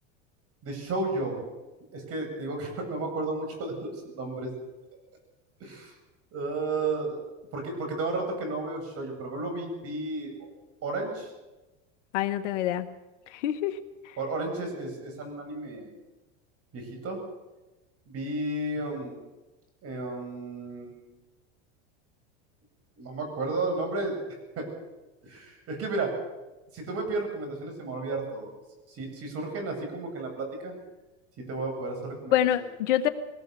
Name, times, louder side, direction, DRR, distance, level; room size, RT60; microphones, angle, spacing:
voice 1, 0.6-1.4 1.9-4.5 5.6-5.9 6.3-7.2 7.5-10.3 10.8-11.3 14.2-15.9 16.7-17.2 18.1-19.2 19.8-21.1 23.0-24.2 24.6-24.7 25.2-26.2 26.7-28.5 28.9-30.7 31.4-32.4, right 2 dB, 40° right, 3 dB, 7.9 m, -33 dB
voice 2, 12.1-12.9 13.3-13.8 14.0-14.2 32.3-33.1, left 11 dB, 75° left, 11 dB, 1.6 m, -26 dB
22.5 x 18.5 x 6.9 m, 1.1 s
supercardioid pair, 110°, 36 cm